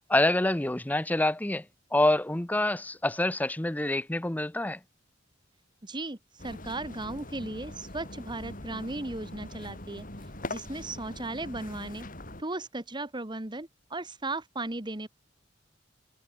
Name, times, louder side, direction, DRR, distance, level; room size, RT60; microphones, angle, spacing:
voice 1, 0.1-1.6 1.9-4.8, left 1 dB, 10° left, 0.6 m, -26 dB
voice 2, 5.8-10.0 10.5-12.1 12.4-15.1, right 2 dB, 25° right, 1.7 m, -36 dB
sound 1, 6.4-12.4, left 1 dB, 45° left, 7.5 m, -42 dB
head